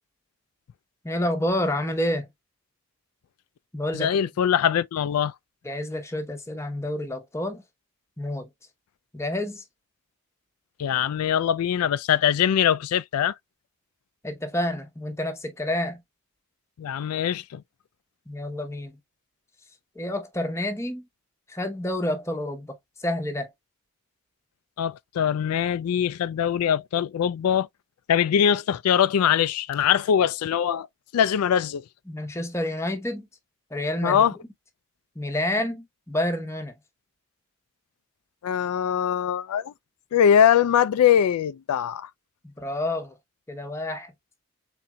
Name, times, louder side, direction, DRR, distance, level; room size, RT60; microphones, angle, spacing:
voice 1, 1.0-2.3 3.7-4.1 5.6-7.6 8.2-8.5 9.1-9.6 14.2-16.0 18.3-18.9 20.0-21.1 21.5-23.5 32.1-33.3 33.7-34.2 35.2-36.7 42.4-43.1 43.5-44.1, left 1 dB, 15° left, 0.8 m, -29 dB
voice 2, 3.9-5.3 10.8-13.3 16.8-17.6 24.8-27.7 28.1-30.9 31.1-31.8 34.0-34.3 38.4-39.7 40.1-42.1, left 9 dB, 90° left, 0.3 m, -22 dB
4.2 x 3.9 x 2.2 m
head